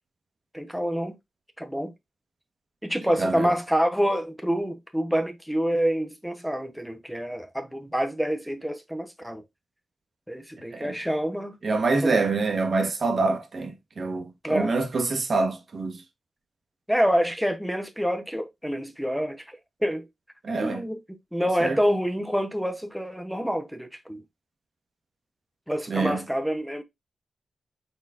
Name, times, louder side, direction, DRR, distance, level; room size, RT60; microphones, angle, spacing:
voice 1, 0.5-1.2 1.6-1.9 2.8-9.4 10.3-11.6 12.0-12.2 14.4-14.7 16.9-19.4 19.8-20.1 20.6-21.0 21.3-24.2 25.7-26.8, equal, ahead, 0.7 m, -27 dB
voice 2, 3.2-3.5 10.7-10.9 11.6-16.0 20.4-20.8 21.6-21.8 25.9-26.2, right 3 dB, 45° right, 0.9 m, -26 dB
4.1 x 4.0 x 2.4 m
wide cardioid pair, 140°, 0 cm